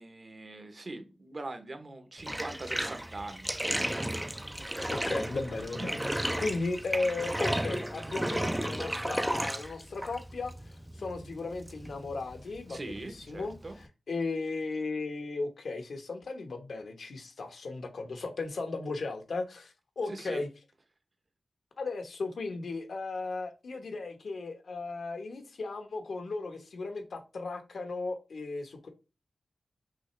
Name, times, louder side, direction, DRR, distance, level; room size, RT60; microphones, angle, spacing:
voice 1, 0.0-4.1 5.5-6.0 12.7-13.8 20.1-20.4, right 2 dB, 45° right, 0.9 m, -42 dB
Bathtub (filling or washing), 2.2-13.9, right 1 dB, 10° right, 0.3 m, -34 dB
voice 2, 4.9-20.5 21.8-28.9, left 3 dB, 80° left, 1.0 m, -36 dB
6.0 x 2.5 x 3.2 m
wide cardioid pair, 70°, 0 cm